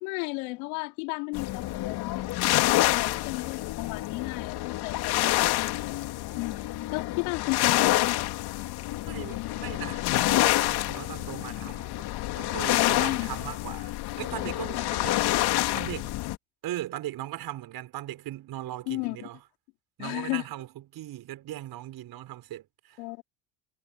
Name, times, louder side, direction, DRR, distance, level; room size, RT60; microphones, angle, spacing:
voice 1, 0.0-2.6 2.9-6.6 6.9-8.3 12.7-13.3 14.7-15.0 18.9-19.3 20.0-20.4 23.0-23.2, left 28 dB, 80° left, 3.2 m, -34 dB
sound 1, 1.3-16.4, left 16 dB, 65° left, 2.6 m, -27 dB
voice 2, 9.0-16.2 16.6-19.4 20.0-23.0, right 14 dB, 60° right, 6.0 m, -39 dB
supercardioid pair, 75°, 41 cm